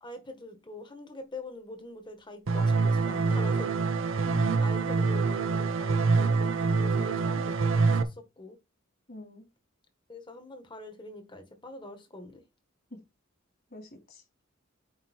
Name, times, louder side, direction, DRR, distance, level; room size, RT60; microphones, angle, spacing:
voice 1, 0.0-3.7 4.6-8.6 10.1-12.4, left 1 dB, 25° left, 1.5 m, -44 dB
sound 1, 2.5-8.0, right 4 dB, 70° right, 0.8 m, -25 dB
voice 2, 4.2-4.9 6.8-7.2 9.1-9.5 12.9-13.0 13.7-14.2, equal, 50° left, 3.0 m, -45 dB
8.7 x 3.0 x 4.5 m
head